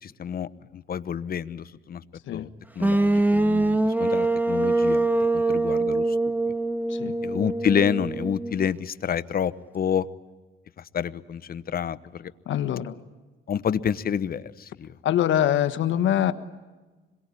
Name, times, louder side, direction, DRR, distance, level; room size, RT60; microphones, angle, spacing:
voice 1, 0.0-2.0 2.3-2.5 2.7-5.1 5.3-6.2 7.2-10.1 10.9-12.3 13.5-14.9, left 8 dB, 50° left, 15 dB, 1.0 m, -28 dB
sound 1, 2.8-8.7, right 2 dB, 10° right, 1.7 m, -23 dB
voice 2, 12.5-12.9 15.0-16.3, left 11 dB, 75° left, 11 dB, 1.4 m, -23 dB
26.5 x 22.5 x 9.9 m, 1.2 s
cardioid pair, 90°, 20 cm